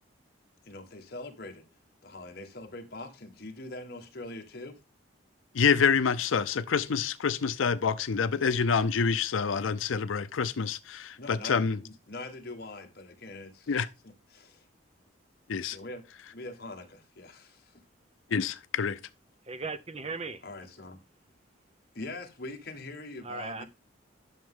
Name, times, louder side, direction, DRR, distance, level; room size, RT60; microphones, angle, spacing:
voice 1, 0.6-1.6 2.0-4.8 11.2-14.7 15.7-16.1 16.3-17.8 20.4-21.0 21.9-23.7, left 2 dB, 50° left, 1.6 m, -43 dB
voice 2, 5.5-11.8 13.7-13.9 15.5-15.8 18.3-19.0, left 6 dB, 85° left, 0.5 m, -27 dB
voice 3, 19.4-20.4 23.2-23.6, right 4 dB, 30° right, 0.6 m, -37 dB
10.5 x 6.4 x 3.8 m
head